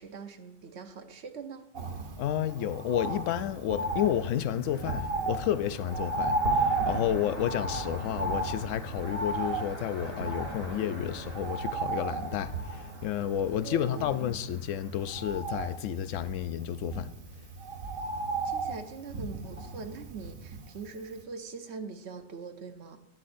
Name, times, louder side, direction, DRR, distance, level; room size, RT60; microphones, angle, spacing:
voice 1, 0.0-1.7 13.6-14.4 18.4-23.0, right 5 dB, 60° right, 0.9 m, -42 dB
Bird, 1.8-20.9 21.2-21.3, right 3 dB, 80° right, 1.6 m, -34 dB
voice 2, 2.2-17.1, left 10 dB, 75° left, 0.9 m, -31 dB
sound 1, 3.8-15.1, equal, 30° left, 2.8 m, -47 dB
12.0 x 9.5 x 2.6 m
omnidirectional pair, 1.4 m